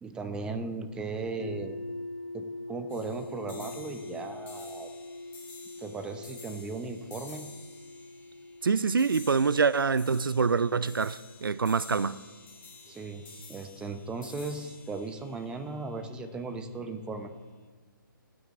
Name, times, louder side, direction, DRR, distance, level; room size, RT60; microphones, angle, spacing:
voice 1, 0.0-1.8 2.3-4.9 5.8-7.5 12.9-13.2 13.5-17.3, right 3 dB, 5° right, 0.7 m, -37 dB
sound 1, 1.4-13.3, left 2 dB, 45° left, 2.1 m, -44 dB
sound 2, 2.9-16.4, left 5 dB, 15° left, 1.8 m, -51 dB
voice 2, 8.6-12.2, right 5 dB, 80° right, 0.5 m, -25 dB
16.0 x 6.3 x 8.3 m
figure-of-eight pair, 140°, 11 cm